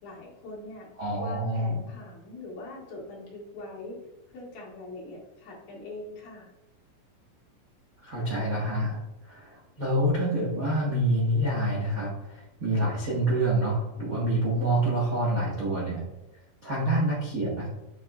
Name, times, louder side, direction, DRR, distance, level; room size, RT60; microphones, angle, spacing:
voice 1, 0.0-0.9 1.2-4.0 4.3-6.5, left 2 dB, 55° left, -5 dB, 3.0 m, -42 dB
voice 2, 1.0-1.7 8.0-9.0 9.3-16.0 16.6-17.7, right 1 dB, 75° right, -6 dB, 0.8 m, -27 dB
7.1 x 6.4 x 2.4 m, 0.94 s
omnidirectional pair, 4.1 m